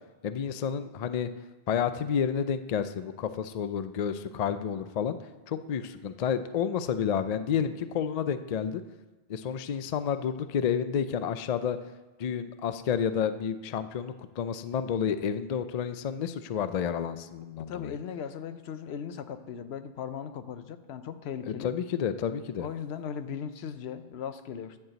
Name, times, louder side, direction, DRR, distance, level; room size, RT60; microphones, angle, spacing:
voice 1, 0.2-1.3 1.7-5.2 5.5-8.8 9.3-11.8 12.2-17.9 21.6-22.7, left 7 dB, 50° left, 11 dB, 0.5 m, -30 dB
voice 2, 17.7-21.7 22.6-24.8, left 7 dB, 80° left, 10 dB, 0.9 m, -38 dB
10.5 x 4.6 x 7.9 m, 1.1 s
omnidirectional pair, 1.1 m